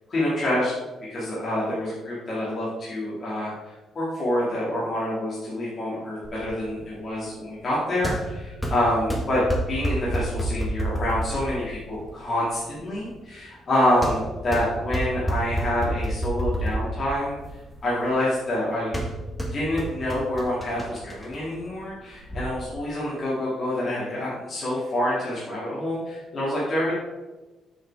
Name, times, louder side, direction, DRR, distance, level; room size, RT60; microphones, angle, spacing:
voice 1, 0.1-0.7 1.1-17.4 17.8-19.0 19.5-26.9, left 1 dB, 45° left, -8 dB, 2.4 m, -27 dB
sound 1, 6.2-22.4, right 1 dB, 10° left, 1.7 m, -31 dB
6.7 x 5.8 x 4.8 m, 1.2 s
cardioid pair, 90°, 0 cm